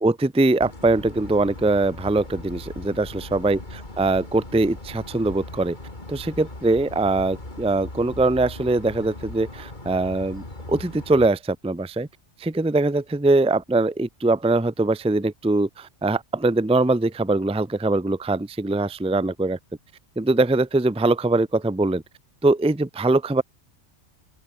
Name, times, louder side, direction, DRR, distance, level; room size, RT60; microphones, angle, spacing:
voice 1, 0.0-3.6 4.0-5.8 6.1-12.1 12.4-19.6 20.2-22.0 22.4-23.4, right 2 dB, 5° right, 0.6 m, -22 dB
sound 1, 0.6-11.3, left 2 dB, 40° left, 3.9 m, -39 dB
open air
omnidirectional pair, 1.2 m